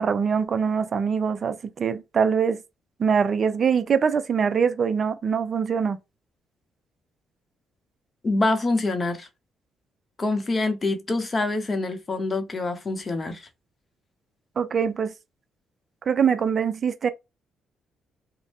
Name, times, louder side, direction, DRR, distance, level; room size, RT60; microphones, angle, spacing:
voice 1, 0.0-2.6 3.0-6.0 14.6-15.1 16.0-17.1, right 6 dB, 45° right, 0.4 m, -23 dB
voice 2, 8.2-9.3 10.2-13.5, left 2 dB, 30° left, 0.7 m, -25 dB
2.6 x 2.0 x 3.4 m
cardioid pair, 90°, 0 cm